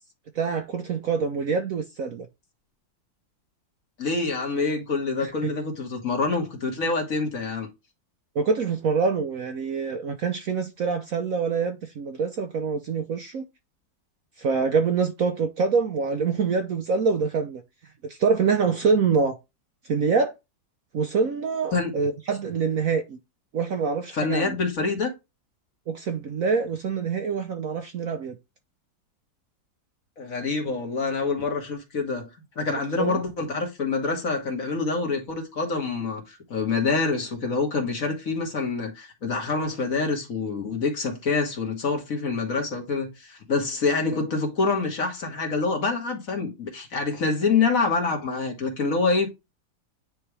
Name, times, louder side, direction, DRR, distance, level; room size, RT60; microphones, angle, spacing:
voice 1, 0.3-2.3 5.2-5.5 8.3-13.5 14.4-17.6 18.0-19.4 19.9-20.3 20.9-23.2 23.5-24.5 25.9-28.4 32.7-33.2 44.1-44.2, right 5 dB, 60° right, 1.0 m, -25 dB
voice 2, 4.0-7.7 21.7-21.9 24.1-25.1 30.2-32.3 32.6-49.3, left 4 dB, 45° left, 2.0 m, -26 dB
9.3 x 3.4 x 3.2 m
omnidirectional pair, 2.0 m